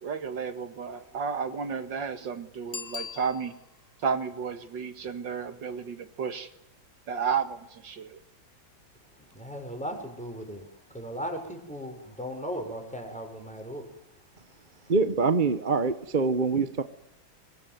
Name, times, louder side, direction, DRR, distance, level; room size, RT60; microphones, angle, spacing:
voice 1, 0.0-3.5 4.0-6.5 7.1-8.2, right 6 dB, 65° right, 10 dB, 2.3 m, -32 dB
Bicycle bell, 2.7-3.9 9.3-9.4, left 6 dB, 40° left, 1.0 m, -40 dB
voice 2, 9.2-14.2 14.4-14.9, equal, 5° left, 4 dB, 6.5 m, -38 dB
voice 3, 14.9-16.8, right 4 dB, 30° right, 11 dB, 1.1 m, -24 dB
25.5 x 22.0 x 9.4 m, 0.80 s
omnidirectional pair, 2.2 m